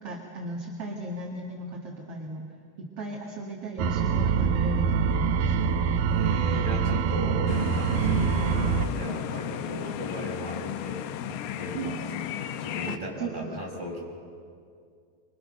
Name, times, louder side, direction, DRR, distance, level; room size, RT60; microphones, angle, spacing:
voice 1, 0.0-2.5 2.8-5.5 7.9-8.3 11.7-12.1 12.9-13.6, right 3 dB, 45° right, -1 dB, 2.3 m, -36 dB
sound 1, 3.8-8.9, right 6 dB, 80° right, 2.0 m, -25 dB
voice 2, 6.1-7.5 7.7-12.0 12.6-14.0, equal, 10° right, -3 dB, 6.2 m, -37 dB
sound 2, 7.5-13.0, left 10 dB, 85° left, 2.0 m, -34 dB
28.0 x 25.5 x 6.6 m, 2.3 s
omnidirectional pair, 4.9 m